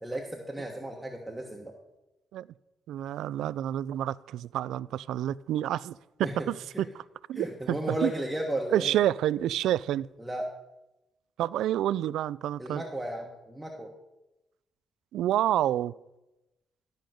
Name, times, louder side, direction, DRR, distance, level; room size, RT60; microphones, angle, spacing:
voice 1, 0.0-1.7 6.2-6.5 6.7-6.8 7.3-9.0 10.2-10.5 12.6-13.9, right 1 dB, 10° right, 1.4 m, -34 dB
voice 2, 2.9-7.0 7.3-8.1 8.7-10.1 11.4-12.8 15.1-15.9, right 12 dB, 80° right, 0.3 m, -29 dB
13.0 x 5.2 x 7.7 m
cardioid pair, 90°, 0 cm